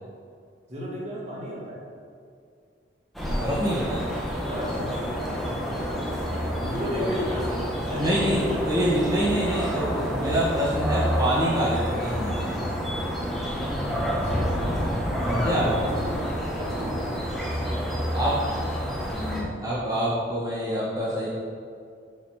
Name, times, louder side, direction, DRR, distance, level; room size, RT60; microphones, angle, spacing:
voice 1, 0.7-1.8 3.2-3.4 4.4-9.2 10.2-10.4 14.0-14.6 15.4-16.3 16.6-17.1, equal, 35° right, -5 dB, 2.4 m, -34 dB
sound 1, 3.1-19.4, equal, ahead, 1.5 m, -29 dB
voice 2, 3.4-4.1 6.9-7.1 8.0-12.5 15.3-15.7 18.1-18.4 19.1-21.3, right 1 dB, 20° right, -10 dB, 2.0 m, -26 dB
7.6 x 7.0 x 6.6 m, 2.3 s
head